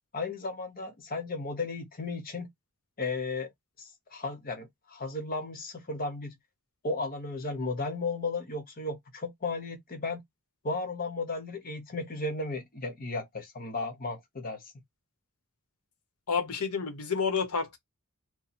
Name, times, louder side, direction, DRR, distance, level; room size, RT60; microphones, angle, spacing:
voice 1, 0.1-2.5 3.0-3.5 3.8-6.3 6.8-10.2 10.6-14.6, left 3 dB, 40° left, 1.0 m, -34 dB
voice 2, 16.3-17.8, left 5 dB, 90° left, 1.0 m, -29 dB
2.9 x 2.1 x 4.1 m
head